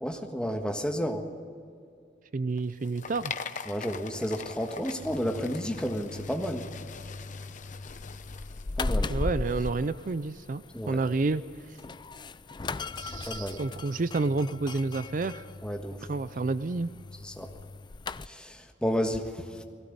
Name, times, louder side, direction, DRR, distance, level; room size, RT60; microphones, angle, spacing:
voice 1, 0.0-1.2 3.7-6.7 8.8-9.1 10.7-11.0 13.3-13.6 15.6-16.0 17.2-17.5 18.2-19.6, equal, 5° left, 4 dB, 1.5 m, -31 dB
voice 2, 2.3-3.4 9.1-11.4 11.7-11.8 13.0-15.4 16.1-17.0, right 3 dB, 45° right, 14 dB, 0.5 m, -30 dB
sound 1, 2.5-9.7, left 6 dB, 45° left, 0.9 m, -43 dB
sound 2, 5.0-18.3, left 3 dB, 25° left, 0.4 m, -38 dB
19.0 x 17.0 x 9.6 m, 2.4 s
head